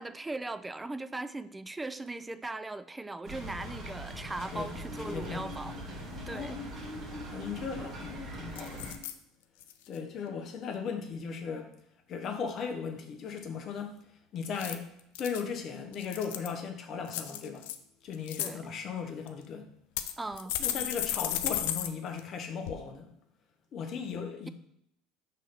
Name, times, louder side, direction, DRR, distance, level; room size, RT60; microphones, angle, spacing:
voice 1, 0.0-5.8 6.3-6.6 18.4-18.6 20.2-20.5, right 2 dB, 15° right, 0.3 m, -39 dB
sound 1, 3.2-8.9, equal, 45° right, 1.8 m, -41 dB
voice 2, 5.0-5.5 6.2-6.7 7.3-9.0 9.9-11.7 12.1-14.0 14.3-14.9 15.2-17.7 18.0-19.7 20.6-23.1 23.7-24.5, left 6 dB, 50° left, 0.9 m, -37 dB
sound 2, 7.8-8.1 8.6-9.1 9.6-10.0 14.4-15.4 15.9-16.6 17.1-17.8 18.1-18.5 19.3-19.4 20.0-21.9 22.2-22.3 22.7-22.8, left 11 dB, 80° left, 0.4 m, -34 dB
5.4 x 3.3 x 5.6 m
supercardioid pair, 90°, 0 cm